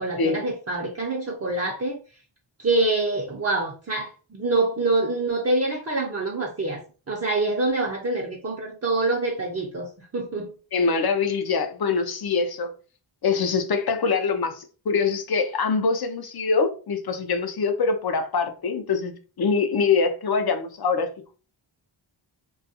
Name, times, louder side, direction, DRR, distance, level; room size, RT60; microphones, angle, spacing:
voice 1, 0.0-2.0 2.6-6.8 7.1-10.5, right 2 dB, 35° right, 0.5 m, -25 dB
voice 2, 10.7-12.7 13.2-21.1, left 5 dB, 55° left, 0.6 m, -24 dB
2.3 x 2.2 x 2.7 m
cardioid pair, 50°, 46 cm